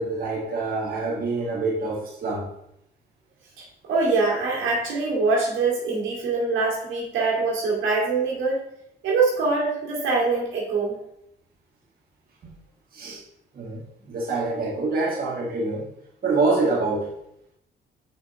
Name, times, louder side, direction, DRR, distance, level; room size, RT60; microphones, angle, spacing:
voice 1, 0.0-2.5 12.9-13.2 13.5-15.9 16.2-17.1, right 3 dB, 45° right, -4 dB, 1.8 m, -26 dB
voice 2, 3.6-8.6 9.0-11.0, right 3 dB, 80° right, -4 dB, 2.3 m, -24 dB
5.8 x 5.3 x 3.7 m, 0.77 s
cardioid pair, 90°, 20 cm